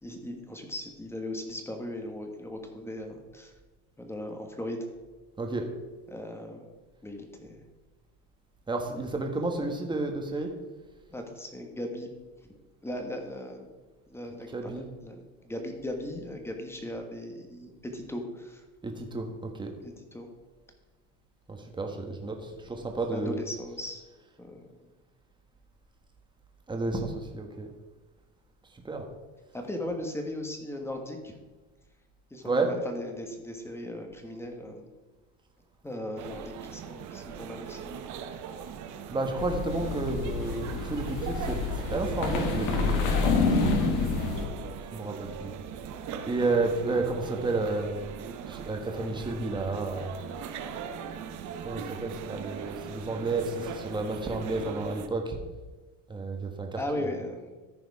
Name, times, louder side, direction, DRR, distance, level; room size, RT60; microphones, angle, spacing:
voice 1, 0.0-3.5 4.0-4.9 6.1-6.7 7.0-7.6 11.1-12.1 12.8-13.7 14.1-18.6 19.8-20.3 22.7-24.0 24.4-24.7 29.5-31.3 32.3-34.9 35.8-37.9 56.8-57.5, left 1 dB, 5° left, 4 dB, 1.3 m, -38 dB
voice 2, 5.4-5.7 8.7-10.5 14.5-14.9 18.8-19.7 21.5-23.4 26.7-27.7 28.8-29.1 32.4-32.7 39.1-41.6 41.9-43.4 44.9-45.5 46.3-48.1 48.5-50.1 51.6-55.4 56.1-56.8, right 3 dB, 10° right, 3 dB, 1.3 m, -31 dB
sound 1, 36.2-55.1, right 7 dB, 45° right, 0.9 m, -40 dB
sound 2, 39.4-44.5, left 4 dB, 50° left, 1.6 m, -28 dB
14.0 x 5.0 x 4.8 m, 1.3 s
cardioid pair, 135°, 40 cm